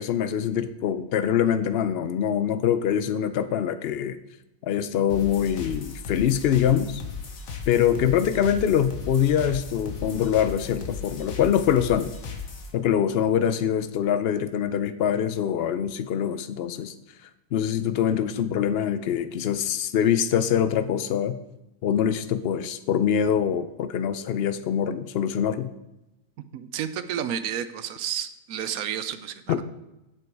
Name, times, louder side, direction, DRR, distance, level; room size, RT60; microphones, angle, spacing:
voice 1, 0.0-4.2 4.6-7.0 7.7-12.1 12.7-16.9 17.5-21.4 21.8-25.7 29.5-29.6, left 9 dB, 85° left, 11 dB, 0.5 m, -24 dB
sound 1, 5.1-12.7, left 5 dB, 60° left, 1.5 m, -36 dB
voice 2, 26.5-29.6, right 9 dB, 75° right, 12 dB, 1.0 m, -31 dB
7.9 x 7.6 x 4.6 m, 0.92 s
omnidirectional pair, 1.6 m